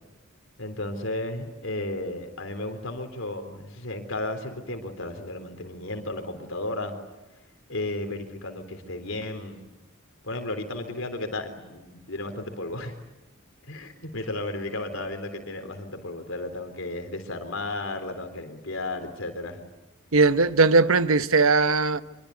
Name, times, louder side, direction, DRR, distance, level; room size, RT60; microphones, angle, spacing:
voice 1, 0.6-7.0 7.7-9.6 10.2-12.9 13.7-19.6, left 2 dB, 70° left, 3.7 m, -34 dB
voice 2, 20.1-22.0, right 3 dB, 80° right, 1.0 m, -19 dB
25.0 x 24.0 x 9.6 m
head